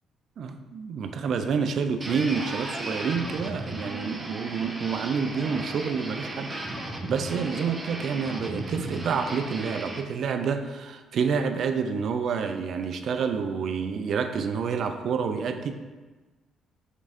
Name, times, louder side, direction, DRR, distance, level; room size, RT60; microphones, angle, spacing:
voice 1, 0.4-6.5 7.1-15.7, right 6 dB, 60° right, 7 dB, 0.4 m, -28 dB
sound 1, 2.0-10.0, right 1 dB, 25° right, 0.7 m, -35 dB
5.4 x 3.5 x 2.6 m, 1.2 s
supercardioid pair, 70°, 0 cm